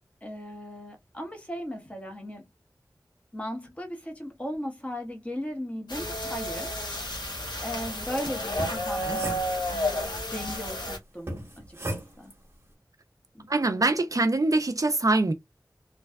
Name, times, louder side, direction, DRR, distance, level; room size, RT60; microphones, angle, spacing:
voice 1, 0.2-2.5 3.3-6.8 7.3-9.4 9.7-11.8 12.2-12.3 13.3-13.7, equal, 15° left, 0.9 m, -37 dB
sound 1, 5.9-11.0, left 1 dB, 85° left, 1.0 m, -31 dB
sound 2, 8.6-10.0 11.3-12.4, right 1 dB, 35° right, 1.0 m, -36 dB
voice 2, 13.5-15.3, right 2 dB, 50° right, 0.4 m, -24 dB
2.6 x 2.2 x 2.2 m
wide cardioid pair, 55°, 7 cm